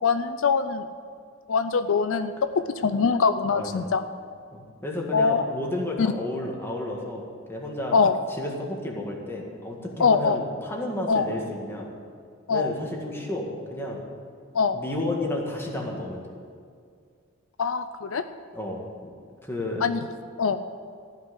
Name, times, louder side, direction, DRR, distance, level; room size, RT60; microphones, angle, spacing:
voice 1, 0.0-0.8 1.5-2.3 2.8-4.0 5.1-5.5 6.0-6.1 7.9-8.1 10.0-10.4 11.1-11.3 12.5-12.7 14.5-14.8 17.6-18.2 19.8-20.0 20.4-20.6, left 5 dB, 70° left, 10 dB, 0.5 m, -23 dB
voice 2, 3.5-3.9 4.5-8.0 8.4-11.9 12.5-14.0 14.7-16.2 18.5-19.1 19.4-19.9, left 1 dB, 10° left, -1 dB, 1.9 m, -32 dB
15.0 x 5.8 x 9.9 m, 2.2 s
head